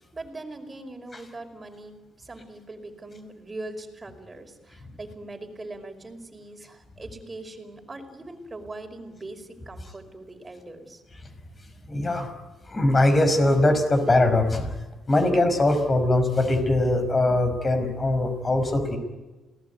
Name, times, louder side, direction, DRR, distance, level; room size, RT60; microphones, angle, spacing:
voice 1, 0.1-11.0, right 2 dB, 25° right, 5 dB, 5.1 m, -41 dB
voice 2, 11.9-12.3 12.7-14.8 15.1-19.0, left 2 dB, 30° left, 8 dB, 5.7 m, -21 dB
28.0 x 19.0 x 9.5 m, 1.1 s
cardioid pair, 90°, 0 cm